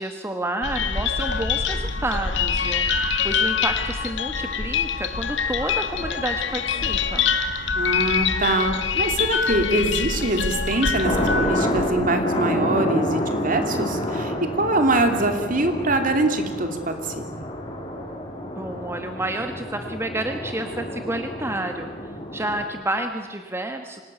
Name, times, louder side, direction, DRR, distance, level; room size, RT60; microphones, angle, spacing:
voice 1, 0.0-7.3 18.6-24.0, right 1 dB, 15° right, 6 dB, 1.3 m, -30 dB
sound 1, 0.6-11.9, left 6 dB, 85° left, 1.8 m, -25 dB
voice 2, 7.7-17.5, right 2 dB, 50° right, 6 dB, 2.9 m, -24 dB
sound 2, 11.0-22.7, left 1 dB, 30° left, 3.8 m, -28 dB
26.0 x 18.5 x 9.3 m, 1.4 s
head